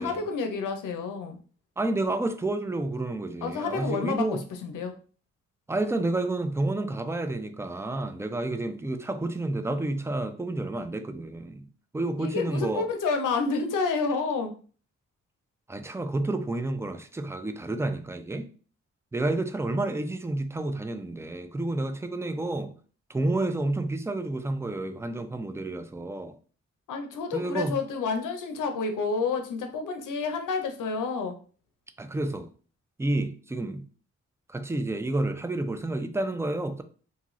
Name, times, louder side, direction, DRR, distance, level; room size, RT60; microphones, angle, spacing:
voice 1, 0.0-1.4 3.4-4.2 4.6-4.9 12.2-14.5 26.9-31.3, left 4 dB, 85° left, 0.6 m, -29 dB
voice 2, 1.8-4.4 5.7-11.7 11.9-12.9 15.7-18.5 19.1-22.7 23.1-26.4 27.3-27.8 32.0-32.5 33.0-33.9 34.5-36.8, right 2 dB, 10° right, 0.3 m, -30 dB
2.6 x 2.4 x 3.0 m
cardioid pair, 60°, 31 cm